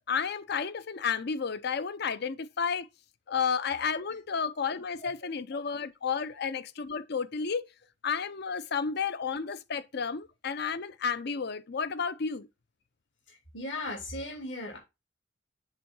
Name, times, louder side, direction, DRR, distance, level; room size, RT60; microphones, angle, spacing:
voice 1, 0.1-2.9 3.3-7.6 8.0-12.5, left 6 dB, 55° left, 0.6 m, -32 dB
voice 2, 13.3-14.8, left 1 dB, 75° left, 3.4 m, -38 dB
7.5 x 3.6 x 5.4 m
head